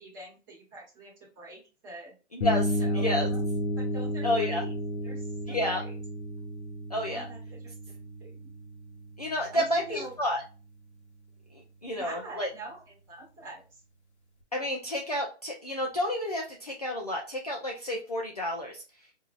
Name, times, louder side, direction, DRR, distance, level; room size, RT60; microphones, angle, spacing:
voice 1, 0.0-2.1 2.8-3.5 3.8-4.7 5.0-6.0 7.0-8.5 9.5-10.1 11.9-13.6, right 2 dB, 15° right, -4 dB, 1.1 m, -45 dB
voice 2, 2.3-3.3 4.2-4.6 5.5-5.8 6.9-7.3 9.2-10.4 11.5-12.5 14.5-18.8, left 1 dB, 35° left, -1 dB, 0.4 m, -30 dB
sound 1, 2.4-10.1, left 1 dB, 70° left, 0.9 m, -32 dB
4.4 x 2.7 x 2.3 m, 0.33 s
hypercardioid pair, 170°, 36 cm